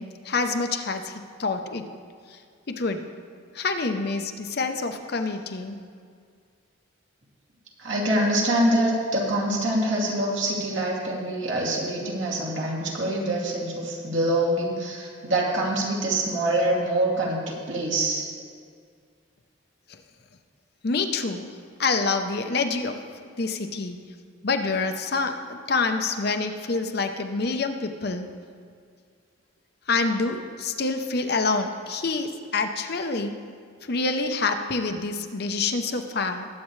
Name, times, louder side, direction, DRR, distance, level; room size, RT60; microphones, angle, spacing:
voice 1, 0.0-1.9 2.3-2.4 2.7-3.0 3.5-5.8 20.8-21.5 21.8-23.0 23.4-24.0 24.4-28.3 29.9-33.4 33.8-36.5, left 3 dB, 50° left, 6 dB, 0.7 m, -27 dB
voice 2, 7.8-18.2, right 1 dB, 70° right, -3 dB, 2.5 m, -25 dB
20.0 x 8.4 x 3.2 m, 2.1 s
head